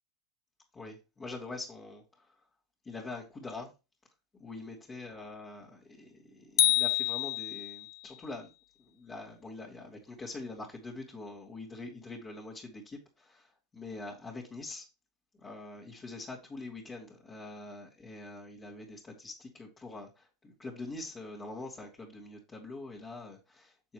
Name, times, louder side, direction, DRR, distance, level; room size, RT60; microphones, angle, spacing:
voice 1, 0.7-2.4 2.8-3.7 4.3-8.5 8.8-14.8 15.4-23.9, left 2 dB, 20° left, 2.5 m, -44 dB
sound 1, 6.6-8.0, left 14 dB, 80° left, 0.6 m, -27 dB
6.9 x 6.9 x 3.2 m
supercardioid pair, 135°, 2 cm